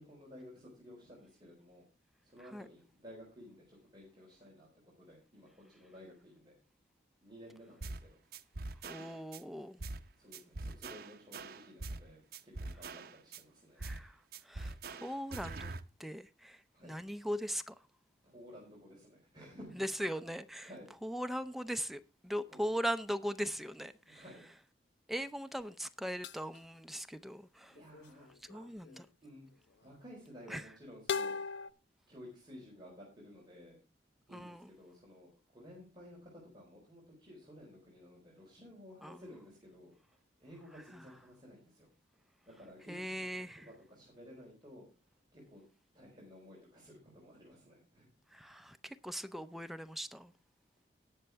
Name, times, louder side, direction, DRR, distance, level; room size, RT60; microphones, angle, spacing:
voice 1, 0.0-1.9 2.2-4.7 5.0-6.6 7.2-8.2 8.9-9.2 10.2-13.8 16.7-17.0 18.2-19.9 20.3-20.9 22.5-22.6 24.0-24.4 27.7-29.5 29.8-31.4 32.1-33.8 34.3-41.9 42.5-43.3 43.6-44.9 45.3-45.6 45.9-48.1, equal, 25° right, 4.2 m, -54 dB
sound 1, 7.8-8.1 8.3-9.4 9.8-10.1 10.3-12.1 12.3-13.4 13.8-14.1 14.3-15.8, right 3 dB, 60° right, 0.8 m, -43 dB
voice 2, 8.8-9.8 13.8-14.2 14.4-15.7 16.0-17.8 19.8-20.7 21.0-24.2 25.1-27.8 28.5-29.1 30.5-30.7 34.3-34.7 39.0-39.3 40.9-41.0 42.9-43.7 48.3-50.3, equal, ahead, 0.6 m, -40 dB
sound 2, 26.2-26.6 27.8-29.0 31.1-31.7, left 6 dB, 90° left, 0.6 m, -38 dB
19.0 x 6.6 x 3.4 m
head